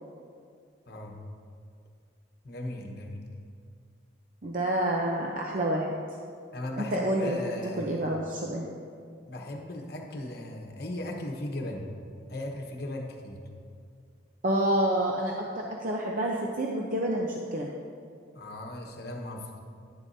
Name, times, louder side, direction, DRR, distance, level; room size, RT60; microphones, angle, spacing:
voice 1, 0.9-1.2 2.4-3.2 6.5-8.1 9.3-11.9 12.3-13.4 18.3-19.6, left 1 dB, 55° left, 1 dB, 1.2 m, -37 dB
voice 2, 4.4-5.9 6.8-8.7 14.4-17.7, right 1 dB, 45° right, -1 dB, 0.7 m, -28 dB
11.0 x 10.5 x 2.7 m, 2.2 s
head